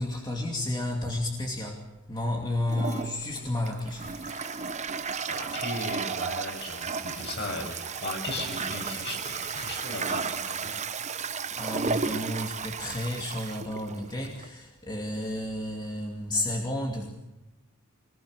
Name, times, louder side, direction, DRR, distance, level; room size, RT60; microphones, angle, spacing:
voice 1, 0.0-4.1 11.4-17.1, left 1 dB, 20° left, 0 dB, 2.6 m, -32 dB
Toilet flush, 2.7-14.5, right 5 dB, 35° right, 0.9 m, -34 dB
sound 1, 3.8-10.9, left 4 dB, 80° left, 3.7 m, -50 dB
voice 2, 5.3-10.7, left 2 dB, 55° left, 2 dB, 7.7 m, -36 dB
25.0 x 20.5 x 6.5 m, 0.97 s
head